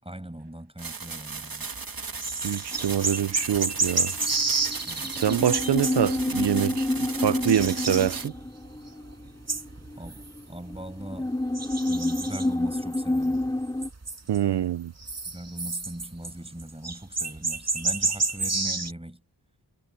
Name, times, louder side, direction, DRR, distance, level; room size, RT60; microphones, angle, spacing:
voice 1, 0.0-1.7 4.9-5.2 10.0-11.4 11.9-13.4 15.2-19.2, right 1 dB, 15° right, 6.1 m, -40 dB
sound 1, 0.8-8.3, right 4 dB, 55° right, 2.2 m, -37 dB
sound 2, 1.8-6.5 6.9-8.7 9.0-11.0 11.5-13.5 13.8-14.6 15.0-18.9, right 3 dB, 35° right, 2.1 m, -30 dB
voice 2, 2.4-4.1 5.1-8.3 14.3-14.9, right 10 dB, 70° right, 0.6 m, -25 dB
sound 3, 2.7-3.9 4.2-13.9, left 1 dB, 10° left, 2.4 m, -29 dB
wide cardioid pair, 65°, 43 cm